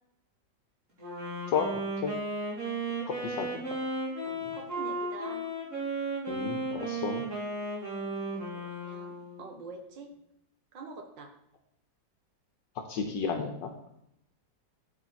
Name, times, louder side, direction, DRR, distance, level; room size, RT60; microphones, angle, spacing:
Wind instrument woodwind instrument, 1.0-9.6, right 2 dB, 40° right, 3.9 m, -35 dB
voice 1, 3.1-3.6 4.3-4.6 6.3-7.3 12.9-13.7, left 6 dB, 75° left, 5 dB, 1.5 m, -33 dB
voice 2, 4.2-5.5 8.5-10.1 10.7-11.3, right 3 dB, 80° right, 5 dB, 2.0 m, -45 dB
8.8 x 7.9 x 4.2 m, 0.77 s
omnidirectional pair, 2.0 m